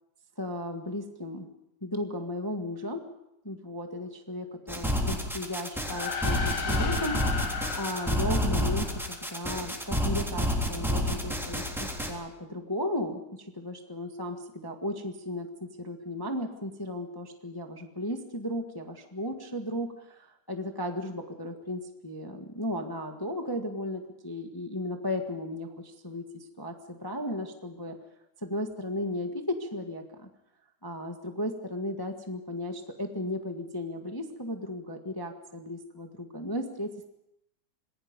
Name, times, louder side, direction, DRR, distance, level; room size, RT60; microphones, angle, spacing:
voice 1, 0.4-1.5 1.8-3.0 3.4-28.0 28.4-30.3 30.8-37.1, left 1 dB, 25° left, 4 dB, 0.5 m, -35 dB
sound 1, 4.7-12.1, equal, ahead, 2.8 m, -29 dB
sound 2, 5.8-9.5, left 5 dB, 80° left, 3.6 m, -35 dB
27.0 x 20.5 x 5.3 m, 0.84 s
omnidirectional pair, 3.6 m